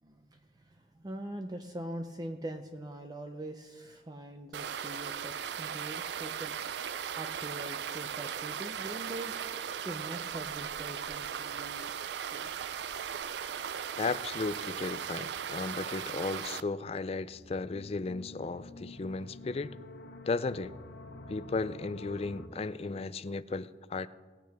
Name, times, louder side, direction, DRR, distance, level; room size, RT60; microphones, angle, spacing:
voice 1, 0.0-6.6 7.1-9.4 9.8-12.0 12.3-12.5, right 1 dB, 25° right, 5 dB, 0.5 m, -43 dB
sound 1, 4.5-16.6, right 8 dB, 75° right, 0.4 m, -38 dB
voice 2, 14.0-19.8 20.3-20.7 21.3-24.1, left 3 dB, 35° left, 15 dB, 0.4 m, -35 dB
sound 2, 17.0-22.5, left 2 dB, 65° left, 1.0 m, -48 dB
18.5 x 9.1 x 3.5 m, 1.4 s
head